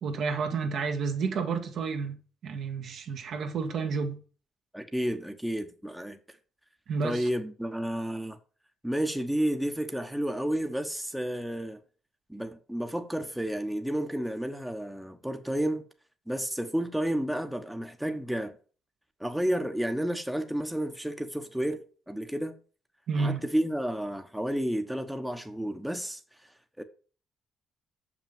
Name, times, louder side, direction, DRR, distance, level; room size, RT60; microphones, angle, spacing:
voice 1, 0.0-2.2 2.4-4.2 6.9-7.3 23.1-23.4, right 5 dB, 65° right, 1.7 m, -30 dB
voice 2, 4.7-6.2 7.0-8.4 8.8-11.8 12.3-15.8 16.3-18.6 19.2-22.6 23.1-26.2 26.8-26.9, right 1 dB, 5° right, 1.1 m, -31 dB
6.6 x 6.0 x 7.2 m
cardioid pair, 90°, 0 cm